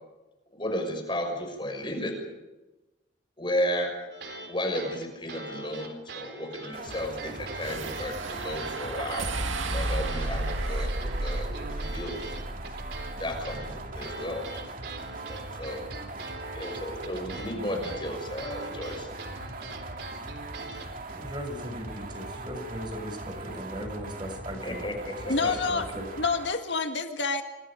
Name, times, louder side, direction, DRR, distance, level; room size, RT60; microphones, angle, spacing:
voice 1, 0.5-2.2 3.4-3.9 4.5-9.3 9.7-10.9 11.2-12.2 13.2-14.4 15.2-15.8 16.5-19.1 24.6-25.3, left 1 dB, 25° left, 4 dB, 6.2 m, -33 dB
sound 1, 4.1-4.5 4.7-8.8 9.1-20.9, right 3 dB, 60° right, 3.8 m, -42 dB
sound 2, 6.7-26.5, right 2 dB, 45° right, 2.6 m, -40 dB
sound 3, 7.6-14.0, right 2 dB, 85° right, 2.3 m, -33 dB
voice 2, 21.1-26.0, equal, 25° right, 4 dB, 6.7 m, -38 dB
voice 3, 25.3-25.9 26.2-27.4, left 4 dB, 70° left, 5 dB, 1.9 m, -27 dB
27.5 x 26.5 x 5.2 m, 1.1 s
head